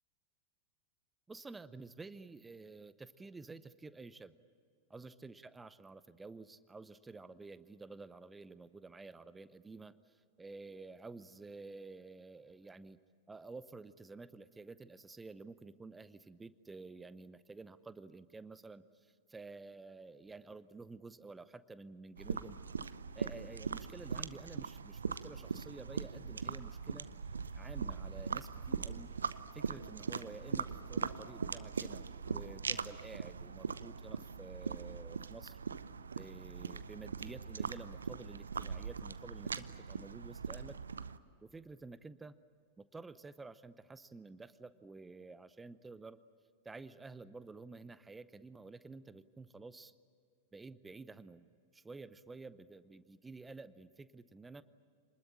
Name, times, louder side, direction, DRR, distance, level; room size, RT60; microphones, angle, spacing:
voice 1, 1.3-4.4 4.9-13.0 13.3-22.6 23.1-27.1 27.5-29.2 29.5-35.6 36.1-40.8 41.4-42.3 42.8-46.2 46.6-49.9 50.5-51.5 51.7-54.6, right 3 dB, 10° right, 16 dB, 0.8 m, -51 dB
sound 1, 22.2-41.2, right 5 dB, 70° right, 0.7 m, -41 dB
27.0 x 20.5 x 8.7 m, 2.3 s
figure-of-eight pair, 90°, 0 cm